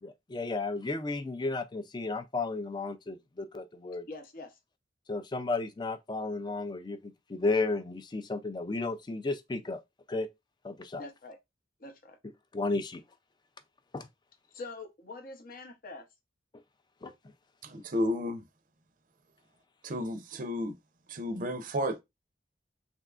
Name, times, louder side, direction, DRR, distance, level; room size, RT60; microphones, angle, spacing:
voice 1, 0.0-4.1 5.1-9.8 10.1-10.3 10.6-11.0 12.5-13.0 13.9-14.1 17.0-17.1, left 3 dB, 25° left, 0.4 m, -33 dB
voice 2, 4.1-4.6 11.0-11.4 11.8-12.2 14.5-16.0, left 3 dB, 50° left, 0.7 m, -44 dB
voice 3, 17.6-18.4 19.8-20.8 21.1-22.0, left 1 dB, 45° right, 0.5 m, -32 dB
3.5 x 2.8 x 2.4 m
head